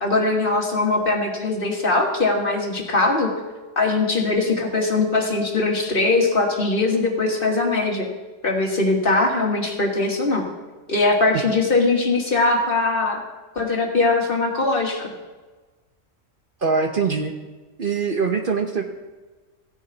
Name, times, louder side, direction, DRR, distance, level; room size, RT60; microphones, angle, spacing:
voice 1, 0.0-3.3 3.8-8.1 8.4-10.5 10.9-13.2 13.6-15.1, left 3 dB, 45° left, 1 dB, 1.8 m, -21 dB
voice 2, 16.6-17.3 17.8-18.8, right 5 dB, 50° right, 4 dB, 1.0 m, -22 dB
15.0 x 10.0 x 4.0 m, 1.3 s
omnidirectional pair, 1.3 m